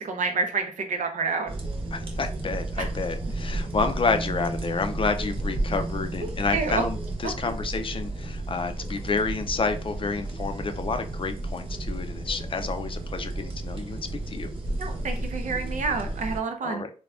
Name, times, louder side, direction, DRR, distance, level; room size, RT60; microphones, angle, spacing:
voice 1, 0.0-1.5 2.8-2.9 6.2-6.8 14.8-16.8, right 4 dB, 85° right, 5 dB, 0.6 m, -29 dB
sound 1, 1.5-16.4, right 2 dB, 45° right, 0.9 m, -32 dB
voice 2, 1.9-14.5 16.6-16.9, left 4 dB, 45° left, 8 dB, 0.4 m, -29 dB
3.4 x 2.2 x 2.4 m, 0.39 s
wide cardioid pair, 85°, 13 cm